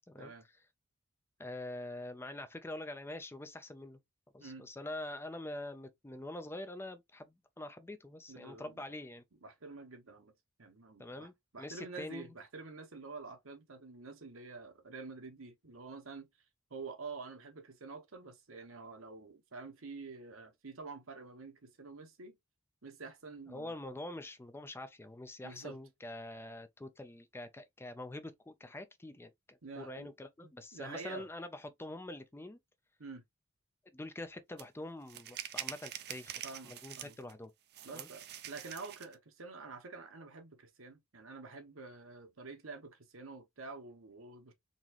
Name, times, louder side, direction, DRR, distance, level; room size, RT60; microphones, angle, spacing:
voice 1, 1.4-4.0 4.3-9.2 11.0-12.3 23.5-32.6 33.9-37.5 37.9-38.1, left 1 dB, 10° left, 0.5 m, -45 dB
voice 2, 8.3-8.8 9.3-10.3 10.6-16.3 16.7-22.4 22.8-23.8 25.4-25.8 29.6-30.1 30.4-31.3 33.0-33.2 36.4-37.2 37.8-44.5, right 4 dB, 75° right, 1.2 m, -48 dB
sound 1, 34.6-34.7 35.1-37.3 37.7-39.1, right 11 dB, 55° right, 0.5 m, -45 dB
4.0 x 3.0 x 2.9 m
head